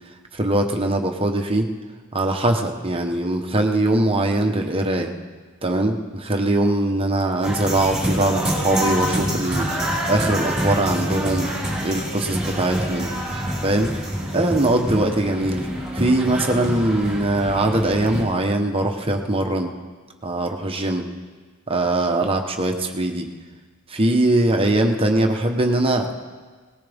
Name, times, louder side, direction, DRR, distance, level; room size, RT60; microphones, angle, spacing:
voice 1, 0.3-1.7 2.1-5.1 5.6-9.7 10.1-11.5 11.8-13.1 13.6-13.9 14.3-15.7 15.9-19.7 20.2-21.1 21.7-23.3 23.9-26.1, right 1 dB, 25° right, 3 dB, 1.1 m, -21 dB
sound 1, 7.4-18.2, equal, 5° right, 4.7 m, -26 dB
21.0 x 19.0 x 3.6 m, 1.4 s
head